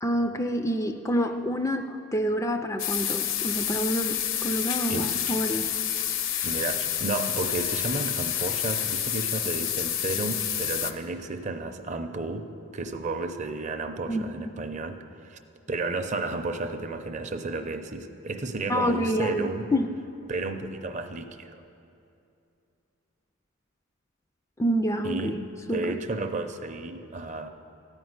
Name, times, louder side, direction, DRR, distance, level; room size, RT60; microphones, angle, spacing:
voice 1, 0.0-5.7 14.1-14.2 18.7-19.9 24.6-25.4 25.7-26.0, equal, 15° left, 6 dB, 0.3 m, -27 dB
sound 1, 2.8-10.9, left 10 dB, 65° left, 0.6 m, -29 dB
voice 2, 6.4-15.4 15.7-19.7 20.3-21.6 25.0-27.5, right 3 dB, 35° right, 7 dB, 0.6 m, -32 dB
14.0 x 5.3 x 9.4 m, 2.7 s
head